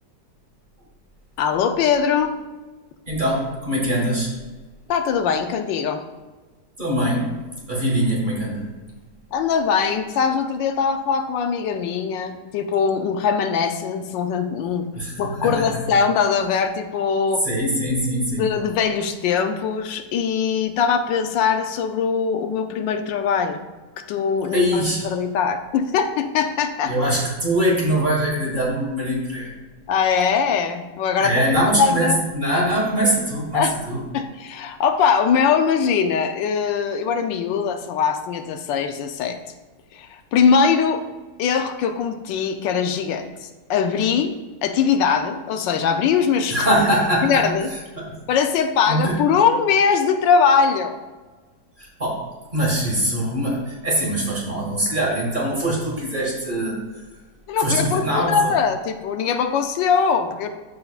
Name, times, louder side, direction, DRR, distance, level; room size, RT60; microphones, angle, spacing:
voice 1, 1.4-2.4 4.9-6.0 9.3-14.9 15.2-17.4 18.4-23.6 24.1-27.1 29.9-32.2 33.5-33.8 34.1-39.4 39.9-41.0 41.4-44.4 44.6-46.6 47.2-47.7 48.3-51.0 57.5-60.5, left 6 dB, 80° left, 7 dB, 1.3 m, -21 dB
voice 2, 3.1-4.3 6.8-7.3 7.7-8.7 14.9-15.7 17.4-18.5 24.5-25.0 26.9-29.5 31.2-32.1 32.3-34.0 46.5-47.4 48.0-48.2 48.9-49.2 51.8-52.2 52.5-56.8 57.6-58.4, equal, 25° right, -3 dB, 1.8 m, -22 dB
13.5 x 4.7 x 2.4 m, 1.3 s
omnidirectional pair, 2.0 m